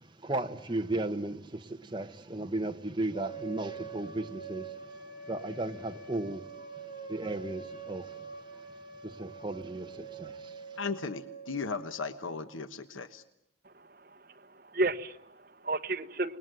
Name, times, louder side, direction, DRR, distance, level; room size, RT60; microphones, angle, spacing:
voice 1, 0.0-8.6 9.0-10.6, right 2 dB, 25° right, 1.4 m, -36 dB
sound 1, 3.1-12.1, right 5 dB, 45° left, 4.0 m, -45 dB
voice 2, 10.8-13.2, left 4 dB, 90° left, 1.3 m, -36 dB
voice 3, 13.6-14.1 14.5-16.4, right 2 dB, 45° right, 1.3 m, -33 dB
28.0 x 20.5 x 9.4 m
head